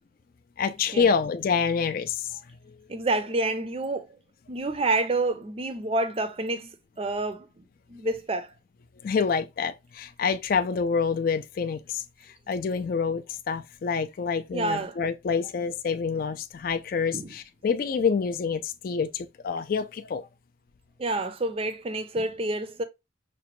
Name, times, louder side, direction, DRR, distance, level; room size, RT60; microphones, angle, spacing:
voice 1, 0.6-2.4 9.0-12.0 12.5-20.3, left 5 dB, 50° left, 0.3 m, -27 dB
voice 2, 2.9-4.1 4.5-7.6 7.9-8.5 14.5-15.0 17.1-17.3 21.0-22.8, right 2 dB, 30° right, 0.5 m, -28 dB
5.9 x 2.1 x 3.0 m
head